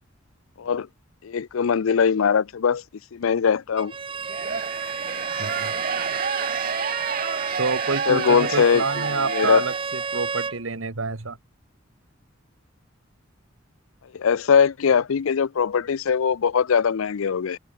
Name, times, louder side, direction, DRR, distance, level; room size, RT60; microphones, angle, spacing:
voice 1, 1.2-2.8 3.1-3.9 6.8-6.9 8.1-8.8 9.2-9.7 14.1-17.6, left 6 dB, 85° left, 0.5 m, -21 dB
Bowed string instrument, 3.8-10.6, right 5 dB, 25° right, 0.6 m, -31 dB
sound 1, 4.3-10.2, right 6 dB, 45° right, 1.0 m, -30 dB
voice 2, 5.4-5.7 7.6-11.4, right 4 dB, 75° right, 1.4 m, -28 dB
head